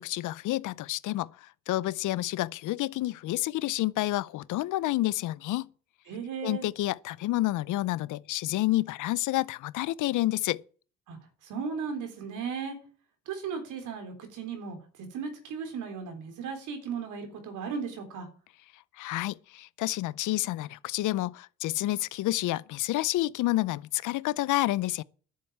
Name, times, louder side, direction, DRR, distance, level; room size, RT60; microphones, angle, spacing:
voice 1, 0.0-5.7 6.4-10.6 19.0-25.0, left 16 dB, 80° left, 0.6 m, -29 dB
voice 2, 6.1-6.7 11.1-12.8 13.3-18.3, right 6 dB, 85° right, 3.8 m, -36 dB
10.5 x 8.1 x 8.6 m
cardioid pair, 90°, 30 cm